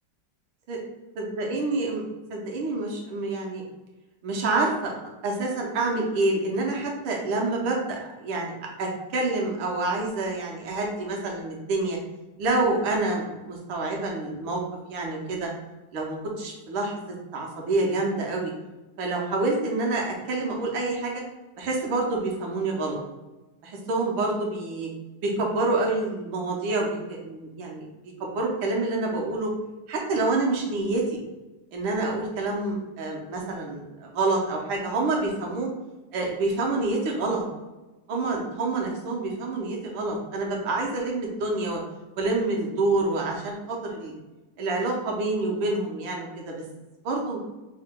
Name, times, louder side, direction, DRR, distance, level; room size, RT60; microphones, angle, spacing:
voice 1, 1.2-2.0 2.3-3.6 4.2-4.9 5.2-8.5 8.8-12.0 12.4-14.6 14.9-15.5 15.9-17.0 17.3-18.5 19.0-21.2 21.6-23.0 23.6-24.9 25.2-27.9 28.2-29.5 29.9-31.2 31.7-35.7 36.1-37.4 38.1-41.8 42.2-44.1 44.6-46.5 47.0-47.4, right 2 dB, 75° right, -1 dB, 1.5 m, -27 dB
5.5 x 2.2 x 3.6 m, 1.1 s
omnidirectional pair, 2.3 m